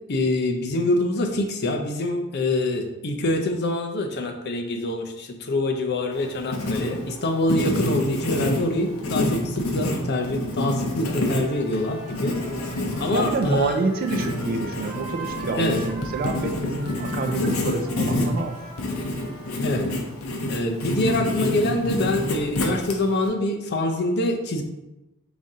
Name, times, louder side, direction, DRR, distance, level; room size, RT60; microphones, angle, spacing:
voice 1, 0.1-12.3 13.0-13.8 15.6-15.8 19.6-19.9 20.5-24.6, left 1 dB, 50° left, 4 dB, 0.6 m, -25 dB
Writing, 6.1-23.3, left 1 dB, 80° left, 0.8 m, -28 dB
Trumpet, 11.3-19.8, right 3 dB, ahead, 1.2 m, -42 dB
voice 2, 13.1-18.6, right 3 dB, 45° right, 4 dB, 0.4 m, -28 dB
5.0 x 2.7 x 3.6 m, 0.95 s
head